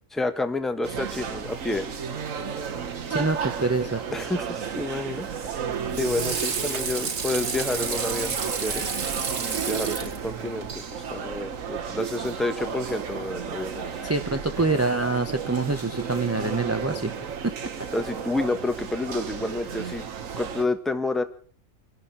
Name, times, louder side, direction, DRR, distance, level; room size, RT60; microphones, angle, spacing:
voice 1, 0.1-1.9 4.1-5.6 6.0-8.8 9.7-13.9 17.9-20.1 20.4-21.2, left 2 dB, ahead, 9 dB, 1.2 m, -29 dB
sound 1, 0.8-20.6, right 6 dB, 75° right, 1.6 m, -33 dB
voice 2, 3.1-4.0 14.0-17.1 17.4-17.5, right 3 dB, 15° right, 7 dB, 0.6 m, -25 dB
Water / Sink (filling or washing), 5.3-10.8, right 5 dB, 60° right, 1.5 m, -31 dB
28.5 x 12.0 x 4.2 m, 0.43 s
omnidirectional pair, 1.4 m